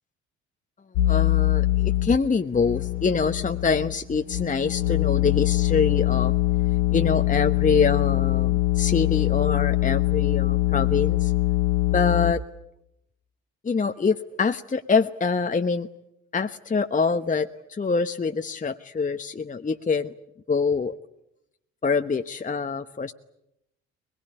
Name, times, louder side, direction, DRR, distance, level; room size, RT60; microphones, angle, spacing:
sound 1, 1.0-2.2 2.5-12.3, left 17 dB, 70° left, 1.0 m, -23 dB
voice 1, 1.0-6.3 6.9-11.3 11.9-12.4 13.6-15.9 16.3-20.1 20.5-20.9 21.8-23.1, left 5 dB, 20° left, 7 dB, 1.1 m, -25 dB
22.0 x 22.0 x 9.9 m, 0.83 s
hypercardioid pair, 50°, 35 cm